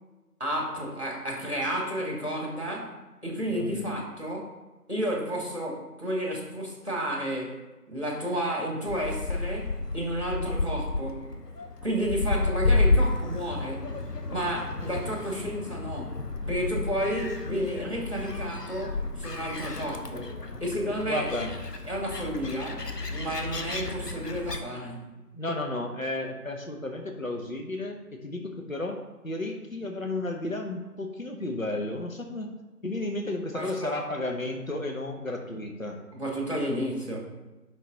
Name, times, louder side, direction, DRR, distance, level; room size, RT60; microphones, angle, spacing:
voice 1, 0.4-2.9 3.2-4.5 4.9-7.6 7.9-11.2 11.8-13.9 14.3-16.1 16.5-21.3 21.9-22.8 23.1-25.2 33.5-34.0 36.1-37.2, equal, 45° right, -1 dB, 2.2 m, -31 dB
voice 2, 3.5-4.0 21.1-21.5 25.3-29.0 29.2-32.5 32.8-36.0, left 2 dB, 60° left, 3 dB, 1.2 m, -33 dB
Gull seagull, 8.9-24.6, left 3 dB, 85° left, 1.1 m, -31 dB
10.5 x 4.1 x 4.1 m, 1.1 s
figure-of-eight pair, 180°, 47 cm